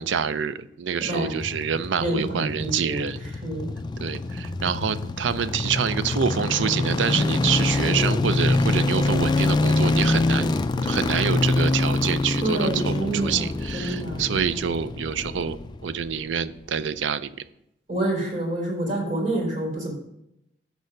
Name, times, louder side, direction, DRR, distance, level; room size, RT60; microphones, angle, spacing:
voice 1, 0.0-3.2 4.0-10.5 10.8-15.6 15.8-17.3, right 7 dB, 80° right, 14 dB, 0.4 m, -26 dB
sound 1, 1.1-16.3 16.6-16.7, left 2 dB, 25° left, 0.3 m, -25 dB
voice 2, 2.0-3.1 3.4-3.7 12.4-13.5 13.7-14.3 17.9-19.9, right 1 dB, 45° right, -3 dB, 3.4 m, -27 dB
6.5 x 4.8 x 6.5 m, 0.80 s
head